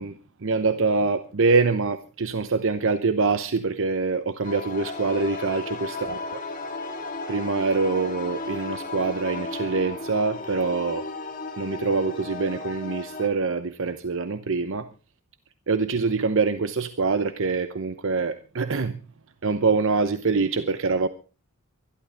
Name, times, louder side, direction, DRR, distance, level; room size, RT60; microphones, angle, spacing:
voice 1, 0.0-6.1 7.3-11.1 11.6-14.9 15.7-19.0 19.4-21.1, right 4 dB, 60° right, 11 dB, 0.8 m, -25 dB
sound 1, 4.4-13.3, left 3 dB, 35° left, 2.2 m, -34 dB
24.5 x 11.5 x 3.4 m, 0.34 s
head